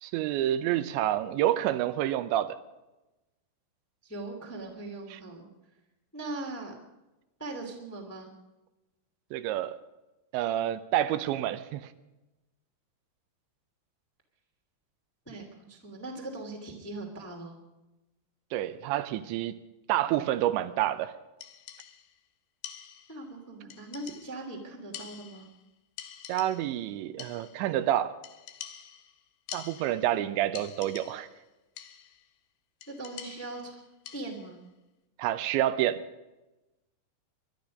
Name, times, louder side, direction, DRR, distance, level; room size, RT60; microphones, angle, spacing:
voice 1, 0.0-2.6 5.1-5.2 9.3-9.8 10.3-11.9 18.5-19.5 19.9-21.1 26.3-28.1 29.5-31.3 35.2-36.0, right 13 dB, 85° right, 12 dB, 3.1 m, -28 dB
voice 2, 4.0-5.5 6.1-6.7 7.4-8.3 15.2-17.6 23.1-25.5 30.1-30.3 32.9-33.8 34.1-34.6, right 2 dB, 5° left, 1 dB, 1.3 m, -40 dB
sound 1, 21.4-22.2 22.6-23.3 23.7-24.5 24.9-25.7 26.0-26.8 27.2-27.8 28.2-30.2 30.6-31.4 31.8-32.3 32.8-34.6, left 10 dB, 75° left, 3.0 m, -46 dB
22.5 x 12.0 x 5.2 m, 1.0 s
omnidirectional pair, 5.2 m